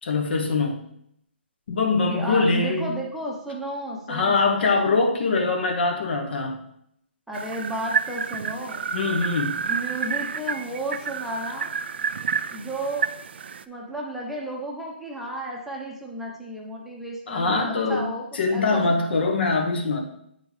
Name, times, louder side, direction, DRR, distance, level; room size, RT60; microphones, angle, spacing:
voice 1, 0.0-0.8 1.7-2.9 4.1-6.6 8.9-9.6 17.3-18.1 18.3-20.0, left 3 dB, 60° left, 3 dB, 1.2 m, -23 dB
voice 2, 2.1-5.0 7.3-8.8 9.6-11.7 12.5-13.1 13.7-19.3, right 1 dB, ahead, -3 dB, 0.8 m, -33 dB
sound 1, 7.3-13.6, right 6 dB, 65° right, 0.4 m, -30 dB
8.6 x 4.4 x 3.3 m, 0.73 s
hypercardioid pair, 145°, 6 cm